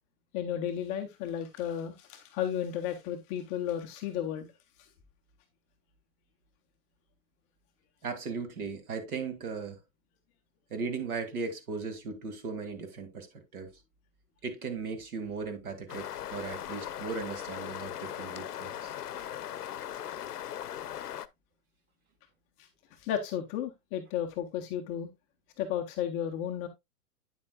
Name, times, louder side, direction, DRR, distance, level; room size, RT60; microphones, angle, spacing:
voice 1, 0.3-4.5 22.6-25.1 25.6-26.7, left 9 dB, 15° left, 0.4 m, -33 dB
voice 2, 8.0-9.8 10.7-13.7 14.4-18.9, right 4 dB, 70° right, 2.2 m, -37 dB
sound 1, 15.9-21.3, left 11 dB, 85° left, 0.7 m, -39 dB
8.8 x 7.2 x 2.3 m
hypercardioid pair, 120°, 45 cm